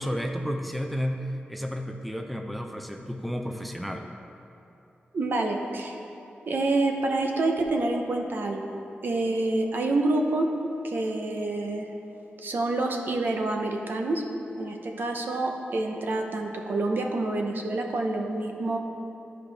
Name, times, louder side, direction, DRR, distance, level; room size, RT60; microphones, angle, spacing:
voice 1, 0.0-4.0, equal, ahead, 4 dB, 0.5 m, -32 dB
voice 2, 5.1-5.9 6.5-10.5 10.8-11.8 12.4-14.2 14.6-18.8, right 2 dB, 65° right, 2 dB, 0.8 m, -27 dB
13.5 x 5.0 x 3.4 m, 2.9 s
wide cardioid pair, 110°, 4 cm